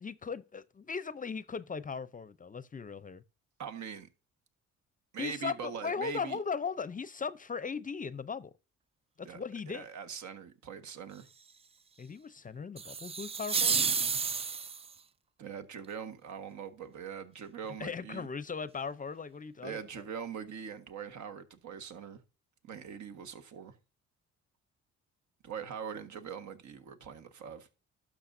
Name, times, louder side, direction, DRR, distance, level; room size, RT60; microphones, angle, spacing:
voice 1, 0.0-3.2 5.2-8.5 9.2-9.9 12.0-13.8 17.8-19.8, left 5 dB, 25° left, 0.6 m, -38 dB
voice 2, 3.6-4.1 5.1-6.4 9.2-9.4 9.7-11.3 15.4-18.3 19.6-22.2 22.6-23.8 25.4-27.7, right 7 dB, 70° right, 1.5 m, -42 dB
sound 1, 12.8-14.9, right 5 dB, 20° right, 0.3 m, -31 dB
12.0 x 6.3 x 2.6 m
cardioid pair, 90°, 30 cm